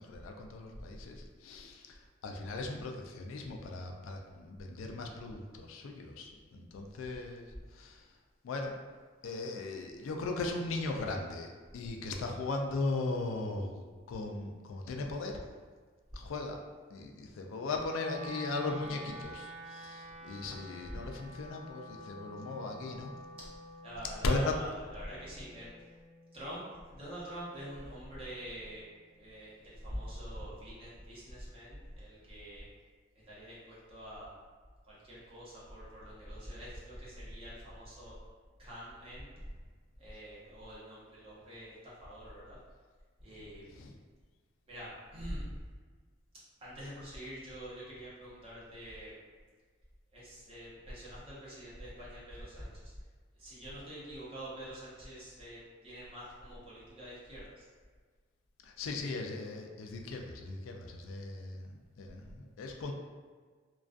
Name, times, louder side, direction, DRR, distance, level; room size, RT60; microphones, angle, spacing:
voice 1, 0.0-8.2 8.4-8.8 9.2-15.4 16.1-16.6 16.9-23.1 24.2-24.5 43.7-44.0 58.6-62.9, left 3 dB, 85° left, 3 dB, 0.3 m, -38 dB
Wind instrument woodwind instrument, 17.7-27.9, equal, 60° right, 0.8 m, -49 dB
voice 2, 23.8-25.7 26.3-28.9 29.2-32.7 33.3-34.3 34.8-38.2 38.6-39.4 40.0-42.6 43.2-43.6 44.7-45.5 46.6-49.1 50.1-52.9 53.4-57.7, equal, 30° right, -8 dB, 0.8 m, -45 dB
2.4 x 2.2 x 2.4 m, 1.5 s
head